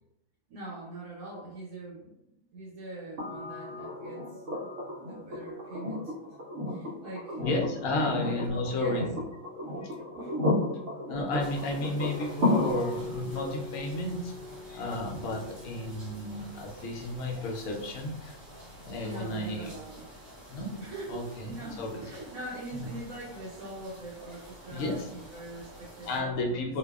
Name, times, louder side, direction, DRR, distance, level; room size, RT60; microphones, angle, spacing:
voice 1, 0.5-2.2 2.5-4.4 5.1-6.4 6.7-7.4 7.9-9.1 10.1-10.5 19.0-20.1 20.8-26.7, right 2 dB, 80° right, -6 dB, 1.1 m, -42 dB
sound 1, 3.2-17.1 18.9-19.0, left 1 dB, 60° right, 0.9 m, -34 dB
voice 2, 7.4-9.1 9.8-10.0 11.1-14.3 14.7-18.4 18.8-19.7 20.5-20.8 21.1-22.0 22.7-22.9 24.7-25.1 26.0-26.8, left 2 dB, 70° left, 0 dB, 0.9 m, -32 dB
sound 2, 11.4-26.2, equal, 10° left, 0.8 m, -50 dB
2.6 x 2.2 x 2.2 m, 0.83 s
omnidirectional pair, 1.5 m